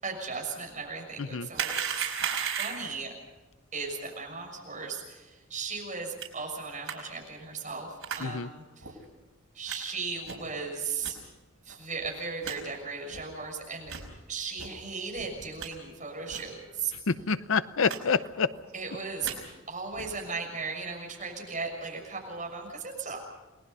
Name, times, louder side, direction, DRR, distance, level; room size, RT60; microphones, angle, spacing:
voice 1, 0.0-2.1 2.6-3.1 3.7-8.9 9.5-11.2 11.6-13.9 14.3-16.9 18.7-19.3 19.7-23.2, right 4 dB, 35° right, 0 dB, 6.7 m, -36 dB
sound 1, 1.5-3.0 6.2-6.3 6.9-7.0 8.0-8.2 8.8-8.9 9.7-9.8 10.2-10.5 11.0-11.1 11.7-11.8 12.0-12.1 12.4-12.6 13.1-13.2 13.8-14.1 14.6-14.7 15.2-15.7 16.3-16.5 16.8-16.9 17.2-17.3 17.9-18.0 18.2-18.6 19.0-19.4 19.9-20.2, right 7 dB, 85° right, 5.1 m, -35 dB
voice 2, 17.1-18.5, left 5 dB, 70° left, 14 dB, 0.7 m, -27 dB
29.0 x 20.0 x 5.6 m, 1.2 s
head